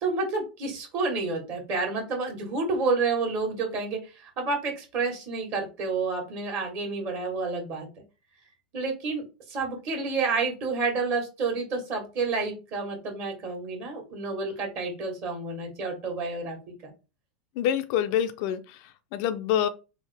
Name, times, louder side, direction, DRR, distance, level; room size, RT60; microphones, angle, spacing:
voice 1, 0.0-7.9 8.7-16.6 16.8-16.9, right 4 dB, 45° right, 1.5 m, -29 dB
voice 2, 17.6-19.7, left 10 dB, 55° left, 0.4 m, -27 dB
3.5 x 2.0 x 3.4 m
hypercardioid pair, 100°, 5 cm